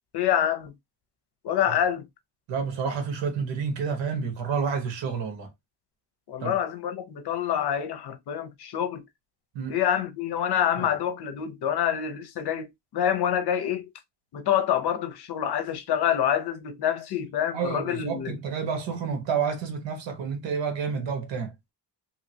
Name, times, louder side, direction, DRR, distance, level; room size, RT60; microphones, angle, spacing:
voice 1, 0.1-0.7 1.4-2.1 6.3-9.0 9.7-13.9 14.3-18.3, left 9 dB, 65° left, 0.8 m, -27 dB
voice 2, 2.5-5.5 6.4-6.6 9.5-9.8 10.8-10.9 17.5-21.5, right 6 dB, 85° right, 1.2 m, -29 dB
3.0 x 2.8 x 2.7 m
cardioid pair, 155°, 43 cm